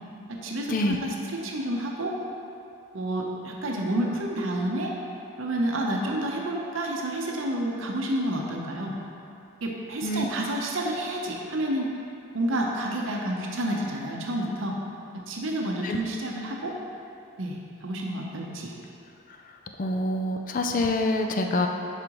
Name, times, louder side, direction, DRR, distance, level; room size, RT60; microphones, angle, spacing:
voice 1, 0.3-2.2 2.9-4.9 5.4-9.0 9.6-11.9 12.3-14.8 15.3-16.8 17.4-18.7, right 1 dB, 70° right, -1 dB, 0.8 m, -29 dB
voice 2, 19.8-21.7, left 2 dB, 40° left, 4 dB, 0.4 m, -26 dB
10.0 x 4.9 x 3.0 m, 2.6 s
head